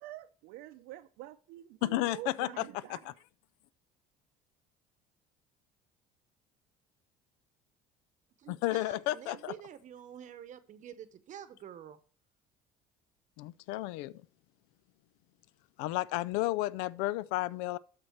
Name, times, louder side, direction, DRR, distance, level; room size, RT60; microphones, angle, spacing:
voice 1, 0.0-3.0, right 15 dB, 75° right, 0.6 m, -47 dB
voice 2, 1.8-3.1 8.5-9.5 13.4-14.1 15.8-17.8, left 17 dB, 85° left, 0.4 m, -32 dB
voice 3, 8.4-12.0, right 9 dB, 50° right, 0.9 m, -48 dB
12.5 x 4.4 x 4.5 m
supercardioid pair, 95°, 16 cm